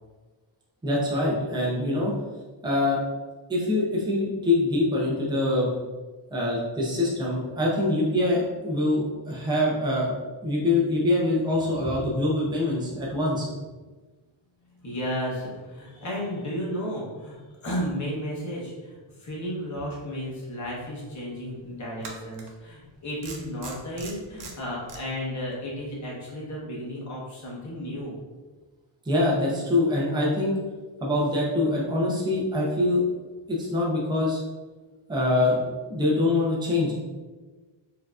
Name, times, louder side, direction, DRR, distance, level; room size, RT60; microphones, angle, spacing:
voice 1, 0.8-2.1 2.6-3.0 3.5-5.7 6.3-10.1 10.4-13.5 29.0-30.6 31.0-33.0 33.5-34.4 35.1-36.9, left 2 dB, 10° right, -5 dB, 0.6 m, -24 dB
voice 2, 14.6-28.2, equal, 35° left, -4 dB, 1.0 m, -33 dB
sound 1, 20.6-20.7 22.0-22.5 23.2-25.0, right 4 dB, 60° right, 0.7 m, -41 dB
4.3 x 2.8 x 2.4 m, 1.3 s
wide cardioid pair, 165°, 48 cm